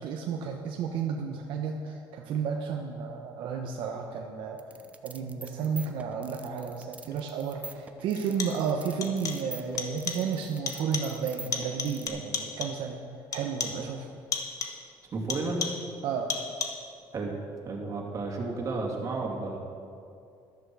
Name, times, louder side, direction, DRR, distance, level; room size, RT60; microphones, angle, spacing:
voice 1, 0.0-4.6 5.0-13.0 13.3-14.1 16.0-16.3, right 6 dB, 70° right, 1 dB, 1.0 m, -32 dB
sound 1, 4.6-12.1, right 3 dB, 15° right, 0.7 m, -45 dB
sound 2, 7.1-7.2 8.2-8.7 9.0-9.5 9.8-10.3 10.7-11.2 11.5-12.9 13.3-13.9 14.3-14.9 15.3-15.9 16.3-16.9, left 5 dB, 40° left, 1.3 m, -35 dB
voice 2, 15.1-15.6 17.1-17.4 17.6-19.6, right 3 dB, 40° right, -1 dB, 2.6 m, -32 dB
13.0 x 12.0 x 4.8 m, 2.4 s
cardioid pair, 115°, 9 cm